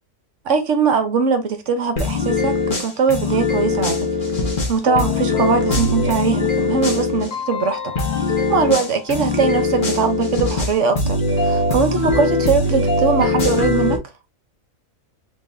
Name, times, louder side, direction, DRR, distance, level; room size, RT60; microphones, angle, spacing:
voice 1, 0.4-4.0 4.7-7.9 8.5-14.0, right 5 dB, 60° right, 1.0 m, -21 dB
sound 1, 2.0-7.3 8.0-14.0, left 2 dB, 35° left, 1.2 m, -21 dB
Keyboard (musical), 4.9-9.8, left 8 dB, 75° left, 1.5 m, -31 dB
3.7 x 3.7 x 2.6 m
omnidirectional pair, 1.7 m